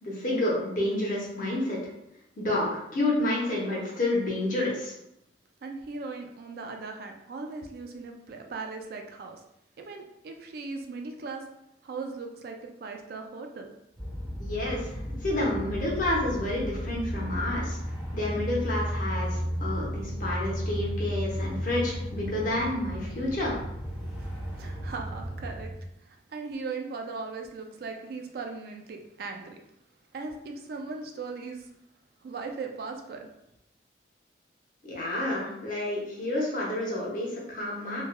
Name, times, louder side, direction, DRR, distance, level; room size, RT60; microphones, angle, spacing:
voice 1, 0.0-1.8 2.4-4.9 14.4-17.8 18.1-23.5 34.8-38.0, left 1 dB, 45° left, -4 dB, 0.7 m, -29 dB
voice 2, 5.6-9.4 9.8-11.4 11.8-13.7 24.6-25.7 26.1-29.6 30.1-31.7 32.2-33.3, right 4 dB, 55° right, 3 dB, 0.3 m, -38 dB
sound 1, 14.0-25.8, equal, 5° right, 0.8 m, -34 dB
3.1 x 2.3 x 2.2 m, 0.82 s
head